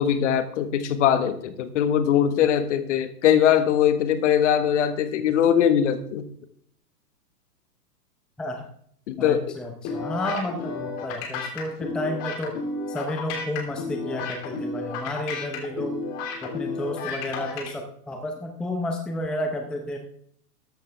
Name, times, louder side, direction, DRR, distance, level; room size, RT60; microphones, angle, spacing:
voice 1, 0.0-6.3 9.1-9.4, left 9 dB, 50° left, 10 dB, 1.6 m, -21 dB
voice 2, 9.2-16.0 16.4-20.0, left 1 dB, ahead, 4 dB, 0.7 m, -31 dB
sound 1, 9.8-17.7, left 4 dB, 30° left, 3.2 m, -32 dB
14.0 x 11.5 x 3.5 m, 0.63 s
hypercardioid pair, 130°, 47 cm